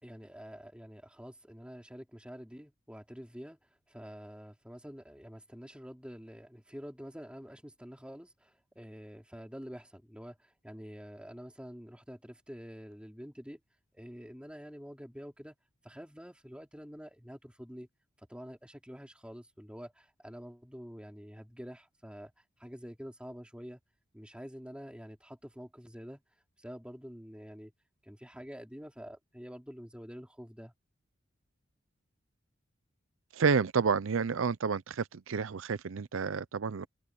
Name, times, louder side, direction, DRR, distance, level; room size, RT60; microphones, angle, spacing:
voice 1, 0.0-3.6 3.9-13.6 13.9-15.5 15.8-17.9 18.2-22.3 22.6-23.8 24.1-26.2 26.6-27.7 28.0-30.7, equal, 5° right, 3.4 m, -47 dB
voice 2, 33.3-36.9, right 5 dB, 90° right, 0.6 m, -30 dB
head